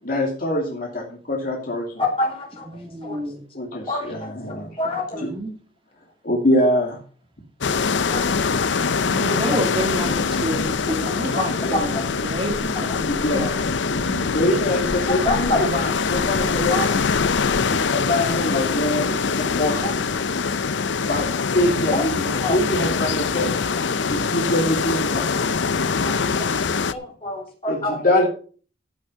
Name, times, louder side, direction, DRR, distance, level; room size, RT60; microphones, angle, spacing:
voice 1, 0.0-2.0 3.5-4.8 5.2-5.3 6.2-7.0 11.6-11.8 13.0-13.6 14.3-17.0 17.7-19.1 19.4-19.9 21.0-21.3 21.5-23.5 24.1-25.3 27.7-28.3, left 1 dB, 50° left, -1 dB, 2.7 m, -24 dB
voice 2, 2.0-2.7 3.0-3.2 3.9-4.3 4.8-5.3 8.1-8.2 9.3-9.4 11.3-11.4 11.7-12.0 15.1-15.7 16.7-16.9 19.8-19.9 22.4-22.6 26.0-26.1 26.4-26.5 26.9-28.0, left 2 dB, 30° left, 0 dB, 4.3 m, -26 dB
voice 3, 2.5-3.4 4.8-5.5 9.0-12.5 12.8-13.5 13.9-14.4, right 1 dB, 25° right, 1 dB, 1.9 m, -30 dB
sound 1, 7.6-26.9, left 5 dB, 85° left, 0.7 m, -23 dB
15.0 x 6.4 x 5.6 m, 0.40 s
head